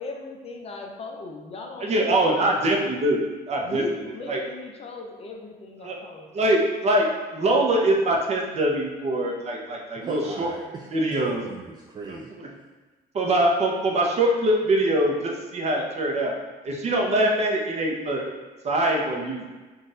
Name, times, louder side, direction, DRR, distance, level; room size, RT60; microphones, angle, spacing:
voice 1, 0.0-2.5 3.6-6.3, left 3 dB, 40° left, 2 dB, 0.6 m, -38 dB
voice 2, 1.8-3.2 3.5-3.8 4.3-4.4 5.8-6.0 6.3-7.1 7.3-10.5 10.9-11.4 12.1-12.5 13.1-16.3 16.6-18.2 18.6-19.4, right 1 dB, 40° right, 0 dB, 0.8 m, -23 dB
voice 3, 10.0-10.9 11.2-12.3, right 4 dB, 25° right, -1 dB, 0.3 m, -38 dB
3.9 x 2.5 x 3.8 m, 1.2 s
cardioid pair, 110°, 17 cm